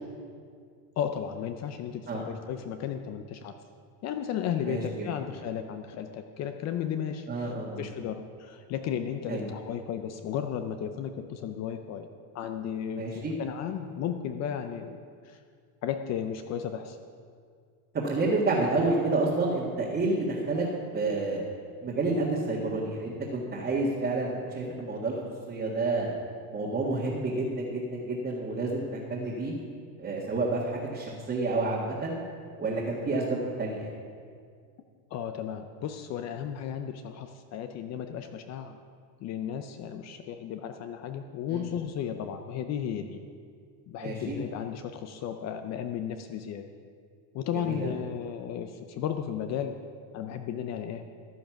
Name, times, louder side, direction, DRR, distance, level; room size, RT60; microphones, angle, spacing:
voice 1, 1.0-3.5 4.0-12.1 12.3-15.4 15.8-17.0 24.8-24.9 35.1-38.8 39.2-43.2 43.9-46.7 47.3-49.8 50.1-51.1, left 8 dB, 35° left, 8 dB, 0.6 m, -34 dB
voice 2, 7.3-7.8 9.3-9.5 12.9-13.4 17.9-20.7 20.9-21.4 21.8-25.2 25.5-26.1 26.5-29.5 30.0-32.2 32.6-33.9 41.5-41.6 44.0-44.4 47.7-47.9, right 2 dB, 20° right, -5 dB, 1.7 m, -29 dB
14.0 x 9.0 x 5.9 m, 2.2 s
supercardioid pair, 135°, 50 cm